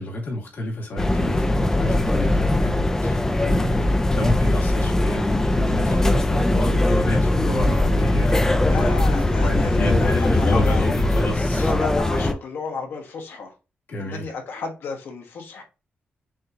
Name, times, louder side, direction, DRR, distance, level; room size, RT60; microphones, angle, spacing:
voice 1, 0.0-5.3 5.6-8.7 9.4-11.7 13.9-14.3, left 1 dB, 60° left, 2.1 m, -30 dB
sound 1, 1.0-12.3, left 1 dB, 15° left, 0.4 m, -20 dB
voice 2, 8.6-10.8 11.7-13.5 14.0-15.6, left 4 dB, 85° left, 1.3 m, -32 dB
6.3 x 3.0 x 2.5 m
wide cardioid pair, 140°, 4 cm